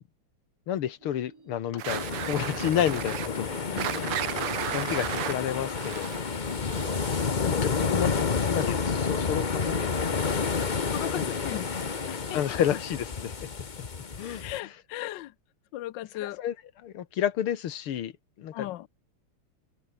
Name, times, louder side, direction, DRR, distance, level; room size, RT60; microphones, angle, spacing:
voice 1, 0.7-4.1 4.4-6.1 7.4-10.5 11.2-11.5 12.3-13.5 14.2-14.7 16.2-16.6 16.8-18.1 18.4-18.9, left 10 dB, 85° left, 2.2 m, -31 dB
sound 1, 1.0-11.0, right 4 dB, 40° right, 3.2 m, -52 dB
sound 2, 1.8-7.5, right 12 dB, 85° right, 2.0 m, -35 dB
sound 3, 1.9-14.6, left 5 dB, 35° left, 0.7 m, -30 dB
voice 2, 10.9-12.4 14.4-15.3 15.7-16.4 18.5-18.9, left 15 dB, 65° left, 1.3 m, -37 dB
omnidirectional pair, 2.4 m